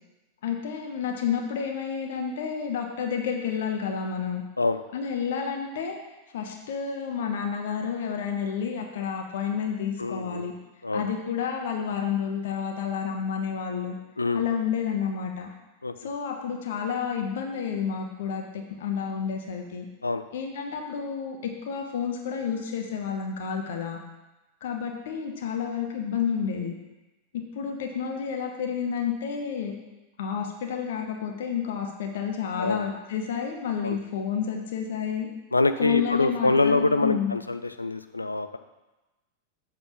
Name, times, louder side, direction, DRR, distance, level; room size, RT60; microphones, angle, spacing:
voice 1, 0.4-4.4 4.9-6.0 6.3-10.5 10.9-13.9 14.3-15.5 16.0-19.9 20.3-21.4 21.7-24.0 24.6-26.7 27.3-29.7 30.2-35.3 35.8-37.3, left 7 dB, 60° left, 2 dB, 1.0 m, -30 dB
voice 2, 10.0-10.5 10.8-11.1 14.2-14.4 15.8-15.9 20.0-20.2 32.6-32.9 33.8-34.0 35.5-38.6, left 3 dB, 80° left, 10 dB, 0.4 m, -25 dB
7.1 x 3.6 x 5.9 m, 1.1 s
figure-of-eight pair, 90°, 0 cm